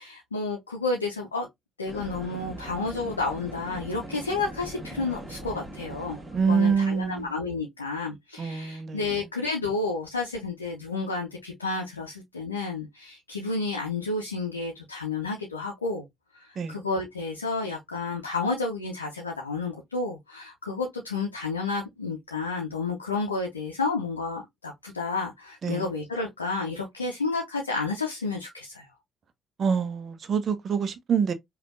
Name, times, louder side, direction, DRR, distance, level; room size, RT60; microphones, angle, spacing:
voice 1, 0.0-1.5 1.8-6.2 6.5-16.0 16.3-28.9, left 3 dB, 90° left, 0.6 m, -31 dB
sound 1, 1.9-7.3, right 1 dB, 15° right, 1.5 m, -41 dB
voice 2, 6.3-7.3 8.4-9.1 16.6-16.8 25.6-25.8 29.6-31.3, right 6 dB, 45° right, 0.7 m, -26 dB
5.0 x 2.5 x 2.5 m
figure-of-eight pair, 50°, 0 cm